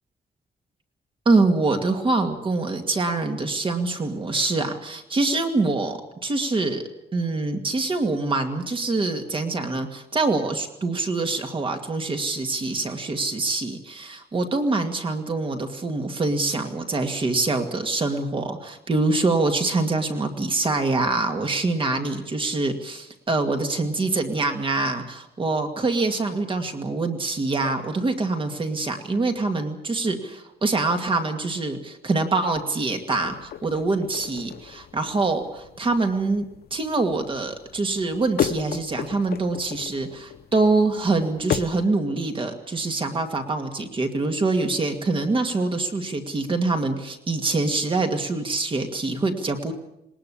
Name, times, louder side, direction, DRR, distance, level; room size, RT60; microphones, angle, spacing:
voice 1, 1.3-6.8 7.1-36.4 36.7-49.7, right 3 dB, 30° right, 5 dB, 2.2 m, -25 dB
sound 1, 33.1-41.9, left 9 dB, 70° left, 0.8 m, -34 dB
20.5 x 20.0 x 8.5 m, 0.83 s
wide cardioid pair, 170°, 17 cm